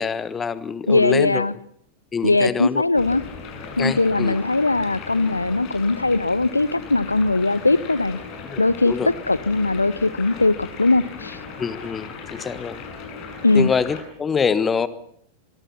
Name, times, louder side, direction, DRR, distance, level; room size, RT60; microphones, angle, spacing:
voice 1, 0.0-1.4 2.1-2.8 3.8-4.4 8.4-9.1 11.6-12.8 13.5-14.9, left 6 dB, 20° left, 1.3 m, -25 dB
voice 2, 0.9-1.5 2.2-3.3 3.8-8.2 8.6-11.4 13.4-13.7, left 2 dB, 80° left, 0.8 m, -20 dB
sound 1, 2.9-14.0, left 5 dB, 40° left, 7.0 m, -37 dB
25.0 x 22.0 x 5.7 m
figure-of-eight pair, 90°, 0 cm